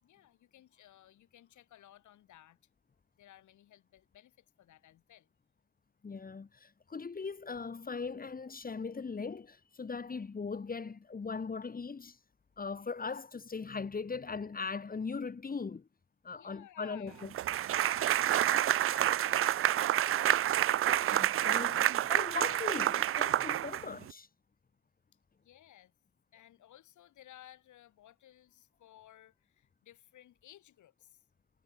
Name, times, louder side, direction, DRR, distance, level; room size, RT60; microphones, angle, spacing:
voice 1, 0.0-2.6 3.2-5.3 16.3-17.2 17.6-19.6 20.0-20.4 25.4-25.9 26.3-31.2, left 12 dB, 75° left, 3.8 m, -58 dB
voice 2, 6.0-12.2 12.6-15.9 16.2-17.3 21.1-24.3, left 4 dB, 30° left, 1.9 m, -39 dB
sound 1, 17.3-24.1, right 12 dB, 45° right, 0.5 m, -28 dB
cardioid pair, 90°, 30 cm